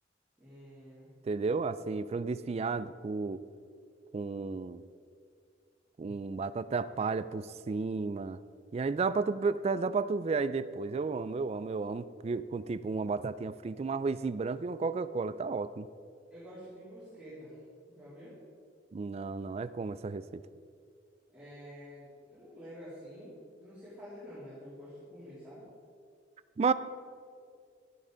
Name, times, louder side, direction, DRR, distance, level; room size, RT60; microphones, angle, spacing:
voice 1, 0.4-1.1 16.3-17.6 17.9-18.3 21.3-23.3 23.6-25.6, equal, 5° right, -12 dB, 2.9 m, -48 dB
voice 2, 1.2-3.4 4.1-4.8 6.0-8.4 8.7-15.9 18.9-20.4 26.6-26.7, right 4 dB, 35° right, 14 dB, 0.3 m, -32 dB
12.5 x 9.8 x 3.9 m, 2.3 s
head